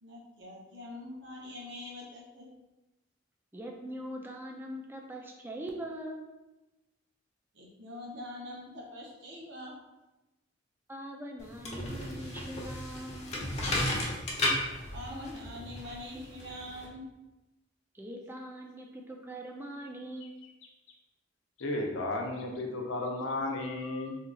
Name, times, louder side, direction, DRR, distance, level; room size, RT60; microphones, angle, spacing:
voice 1, 0.0-2.5 7.5-9.8 14.9-17.1, left 1 dB, 65° right, -3 dB, 0.9 m, -44 dB
voice 2, 3.5-6.3 10.9-13.3 17.9-20.4, right 1 dB, 10° right, 0 dB, 0.4 m, -42 dB
sound 1, 11.4-16.9, left 1 dB, 35° left, 0.7 m, -34 dB
voice 3, 21.6-24.2, left 2 dB, 80° left, 1 dB, 0.6 m, -33 dB
2.8 x 2.3 x 3.8 m, 1.0 s
head